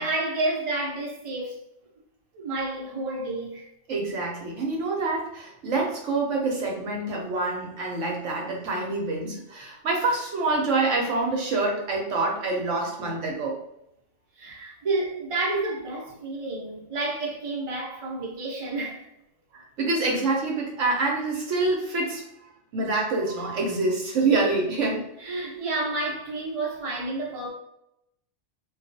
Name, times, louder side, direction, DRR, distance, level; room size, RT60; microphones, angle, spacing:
voice 1, 0.0-1.6 2.3-3.7 14.4-19.1 25.2-27.5, right 2 dB, 35° right, 0.6 m, -30 dB
voice 2, 3.9-13.6 19.5-22.2 22.7-25.0, right 3 dB, 70° right, 1.0 m, -26 dB
2.3 x 2.3 x 2.6 m
omnidirectional pair, 1.4 m